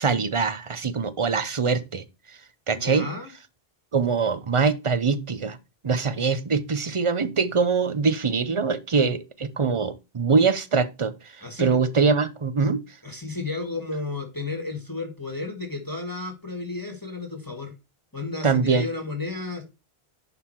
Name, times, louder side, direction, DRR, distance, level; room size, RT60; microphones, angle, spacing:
voice 1, 0.0-2.0 2.7-3.1 3.9-5.6 5.8-12.8 18.4-18.8, right 5 dB, 35° right, 0.7 m, -23 dB
voice 2, 2.7-3.3 11.4-11.8 13.0-17.7 18.1-19.6, left 3 dB, 20° left, 1.5 m, -32 dB
11.0 x 3.7 x 4.4 m
omnidirectional pair, 1.0 m